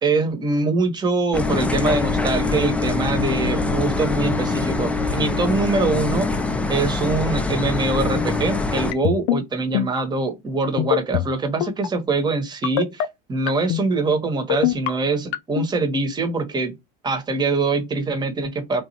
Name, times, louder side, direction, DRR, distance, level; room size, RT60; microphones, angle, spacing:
voice 1, 0.0-6.3 6.7-13.0 13.3-16.7 17.0-18.8, right 3 dB, 20° right, 1.1 m, -23 dB
sound 1, 1.3-8.9, left 3 dB, 5° left, 0.5 m, -23 dB
sound 2, 8.9-9.4 9.7-10.0 10.8-11.3 11.6-11.9 12.6-13.1 13.5-13.8 14.5-14.9 15.3-15.7, left 14 dB, 70° left, 0.5 m, -21 dB
3.0 x 2.2 x 4.2 m
supercardioid pair, 105°, 19 cm